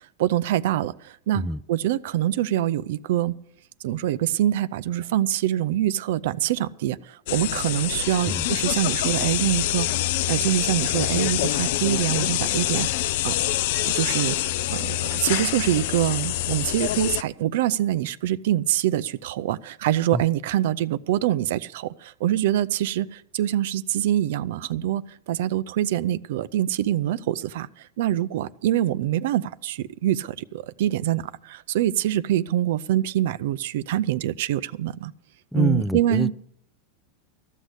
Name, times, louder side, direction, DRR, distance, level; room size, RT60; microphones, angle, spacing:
voice 1, 0.2-1.4 1.7-3.3 3.8-9.9 10.3-12.9 13.2-13.4 13.8-35.1 35.5-36.3, right 12 dB, 75° right, 0.5 m, -25 dB
sound 1, 7.3-17.2, left 14 dB, 70° left, 0.5 m, -25 dB
voice 2, 35.5-36.3, equal, ahead, 0.5 m, -25 dB
14.0 x 6.5 x 9.8 m
hypercardioid pair, 110°, 0 cm